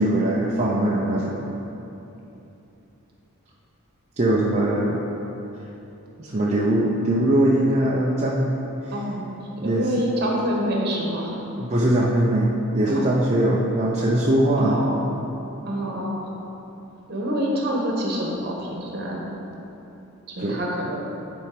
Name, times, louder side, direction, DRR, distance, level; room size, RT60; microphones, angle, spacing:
voice 1, 0.0-1.5 4.2-5.0 6.2-8.5 9.6-9.9 11.6-14.8 20.4-20.6, right 1 dB, 30° right, -5 dB, 0.7 m, -21 dB
voice 2, 8.9-11.4 12.9-13.1 14.6-15.1 15.6-16.3 17.1-19.3 20.3-21.0, equal, 50° right, -2 dB, 1.5 m, -27 dB
10.5 x 4.5 x 5.1 m, 3.0 s
head